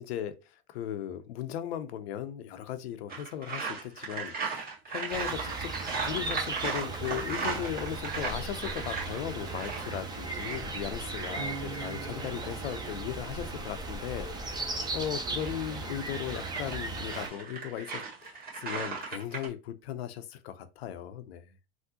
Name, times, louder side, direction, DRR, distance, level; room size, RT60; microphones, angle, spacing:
voice 1, 0.0-5.7 6.0-21.6, left 10 dB, 80° left, 0.6 m, -37 dB
sound 1, 3.1-13.0 15.1-19.5, right 5 dB, 30° right, 1.4 m, -37 dB
sound 2, 5.1-17.3, right 3 dB, 15° right, 0.5 m, -37 dB
Bass guitar, 11.4-14.4, right 3 dB, 55° right, 1.4 m, -45 dB
3.6 x 2.1 x 2.7 m
supercardioid pair, 115°, 31 cm